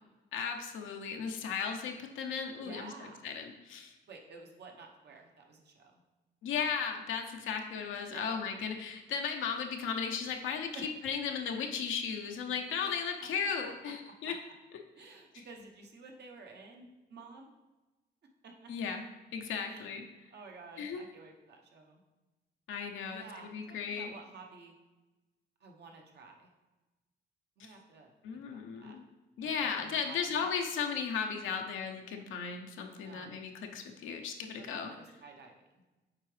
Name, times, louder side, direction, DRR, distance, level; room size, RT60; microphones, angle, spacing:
voice 1, 0.3-3.9 6.4-14.4 18.7-19.0 19.3-20.0 20.8-21.0 22.7-24.1 27.6-27.7 28.2-29.0 29.4-34.9, left 6 dB, 80° left, 3 dB, 0.7 m, -36 dB
voice 2, 2.6-3.2 4.1-6.0 8.1-8.4 10.7-10.9 12.8-13.3 14.3-14.4 15.0-17.5 18.4-18.7 19.7-19.9 20.3-22.0 23.1-24.7 25.6-26.5 27.6-29.0 29.4-30.5 32.9-33.4 34.6-35.8, right 3 dB, 60° right, 2 dB, 1.1 m, -52 dB
7.3 x 4.6 x 3.3 m, 1.1 s
cardioid pair, 90°, 20 cm